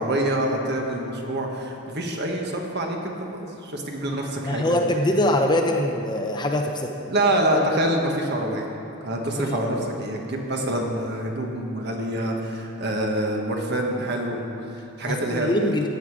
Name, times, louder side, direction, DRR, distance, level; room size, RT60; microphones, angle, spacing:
voice 1, 0.0-4.8 7.1-8.6 9.0-15.9, right 1 dB, 50° right, 1 dB, 1.4 m, -26 dB
voice 2, 4.5-6.9 9.5-9.7 15.1-15.9, left 1 dB, 20° left, 3 dB, 0.7 m, -23 dB
15.5 x 9.1 x 4.8 m, 2.9 s
head